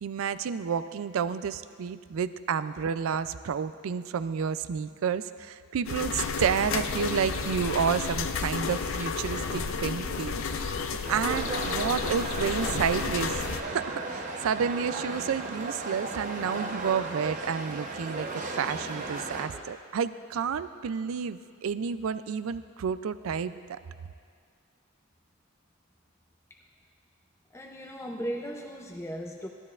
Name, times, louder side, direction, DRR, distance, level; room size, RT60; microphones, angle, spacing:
voice 1, 0.0-10.7 11.1-23.8, right 7 dB, 70° right, 13 dB, 0.4 m, -30 dB
sound 1, 5.8-13.6, left 5 dB, 65° left, 0.5 m, -31 dB
sound 2, 11.1-19.5, right 2 dB, 35° right, 0.8 m, -35 dB
voice 2, 27.5-29.5, equal, 15° left, 1 dB, 0.5 m, -36 dB
15.5 x 12.5 x 2.4 m, 2.1 s
head